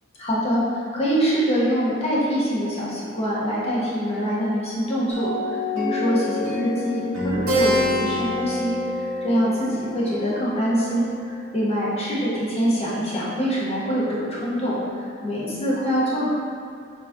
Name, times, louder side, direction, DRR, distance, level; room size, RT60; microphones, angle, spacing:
voice 1, 0.2-16.3, equal, 30° left, -8 dB, 1.1 m, -24 dB
sound 1, 5.1-10.3, left 3 dB, 75° right, 1.0 m, -30 dB
Keyboard (musical), 7.5-12.4, equal, 55° right, 1.1 m, -28 dB
4.7 x 4.0 x 2.8 m, 2.3 s
head